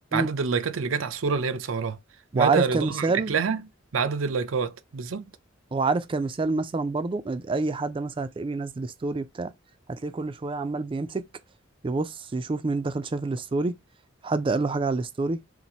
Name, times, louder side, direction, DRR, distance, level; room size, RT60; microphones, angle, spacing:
voice 1, 0.1-2.0 2.3-3.6 3.9-5.2, right 5 dB, 85° right, 0.6 m, -27 dB
voice 2, 2.3-3.3 5.7-9.5 9.9-11.2 11.8-13.7 14.2-15.4, right 3 dB, 25° right, 0.4 m, -27 dB
4.0 x 2.6 x 4.2 m
head